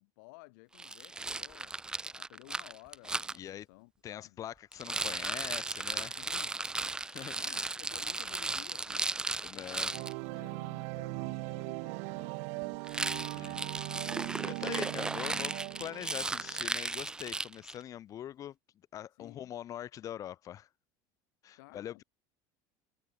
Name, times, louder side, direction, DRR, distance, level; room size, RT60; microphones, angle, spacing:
voice 1, 0.0-1.7 2.1-4.4 6.2-6.5 7.3-13.7 19.2-19.5 21.6-22.0, left 28 dB, 75° left, 4.4 m, -56 dB
Rattle, 0.8-3.4 4.7-10.1 12.8-17.8, right 3 dB, 5° right, 0.5 m, -36 dB
voice 2, 3.3-3.7 4.0-6.2 7.1-7.6 9.4-9.9 13.3-13.6 14.4-18.6 18.9-20.7 21.4-22.0, left 11 dB, 30° left, 1.6 m, -43 dB
sound 1, 9.9-16.8, right 40 dB or more, 65° right, 0.7 m, -39 dB
cardioid pair, 160°, 11 cm